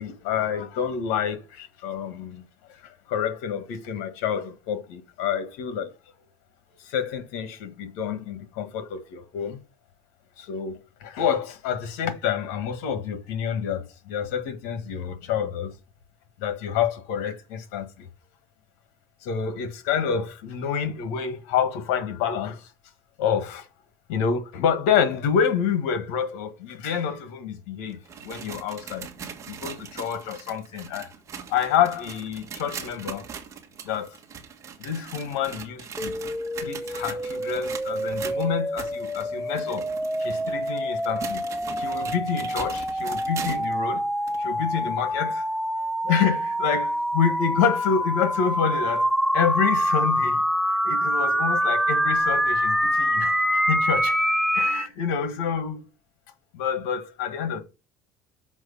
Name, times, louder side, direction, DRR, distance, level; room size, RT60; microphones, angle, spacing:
voice 1, 0.0-2.4 2.8-5.9 6.8-9.6 10.4-15.7 16.4-18.1 19.2-22.7 23.2-23.7 24.1-28.0 28.2-29.1 29.5-31.1 31.5-33.3 33.8-34.2 34.8-36.1 36.6-39.9 40.2-41.4 41.8-44.1 44.4-45.4 46.0-49.1 49.3-50.4 50.8-54.2 54.5-55.8 56.5-57.6, left 7 dB, 85° left, 1.5 m, -28 dB
sound 1, 27.9-43.8 44.3-44.4 45.1-45.2 46.1-46.2, right 7 dB, 35° right, 1.6 m, -40 dB
sound 2, 36.0-54.9, equal, ahead, 0.5 m, -26 dB
6.3 x 5.1 x 5.4 m
cardioid pair, 120°, 9 cm